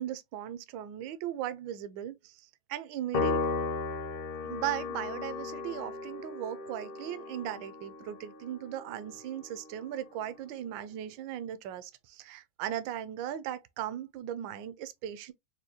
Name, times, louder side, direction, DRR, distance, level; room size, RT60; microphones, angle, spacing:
voice 1, 0.0-2.3 2.7-3.4 3.9-4.0 4.4-15.3, right 11 dB, 75° right, 1.2 m, -38 dB
Piano, 3.1-9.7, left 3 dB, 85° left, 1.6 m, -36 dB
4.9 x 2.2 x 2.7 m
omnidirectional pair, 2.3 m